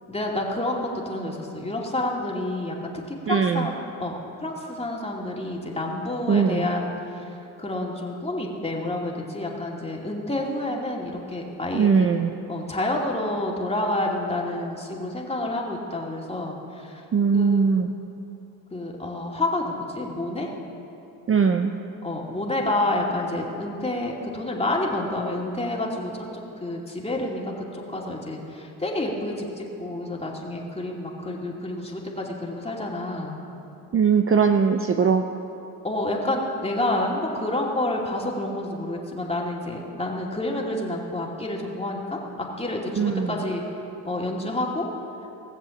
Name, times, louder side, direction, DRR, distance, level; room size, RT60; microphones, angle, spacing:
voice 1, 0.1-3.7 4.0-4.1 4.4-6.9 7.2-7.3 7.6-11.9 12.5-17.0 17.3-17.6 18.7-20.5 22.0-33.4 35.8-43.6 44.0-44.9, left 1 dB, 15° left, -2 dB, 2.6 m, -29 dB
voice 2, 3.3-3.7 6.3-6.7 11.7-12.3 17.1-17.9 21.3-21.7 33.9-35.2 43.0-43.4, right 6 dB, 30° right, 6 dB, 0.7 m, -20 dB
19.0 x 7.4 x 7.2 m, 2.9 s
supercardioid pair, 85°, 44 cm